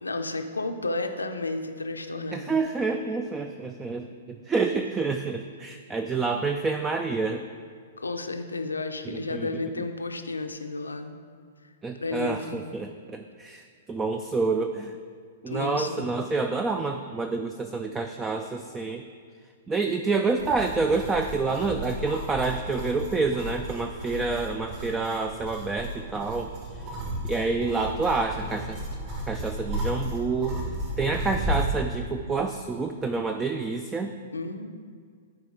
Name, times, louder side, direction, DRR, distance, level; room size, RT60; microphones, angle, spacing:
voice 1, 0.0-2.6 8.0-11.2 12.0-12.6 15.5-16.2 34.3-34.7, left 3 dB, 80° left, 6 dB, 0.5 m, -32 dB
voice 2, 2.3-7.4 9.0-9.5 11.8-15.0 15.4-19.0 19.7-27.0 27.2-28.8 29.3-30.6 31.0-34.1, right 4 dB, 15° right, 6 dB, 0.3 m, -28 dB
sound 1, 20.4-31.8, equal, 40° right, 1.7 m, -34 dB
12.0 x 4.7 x 3.8 m, 2.1 s
figure-of-eight pair, 110°, 0 cm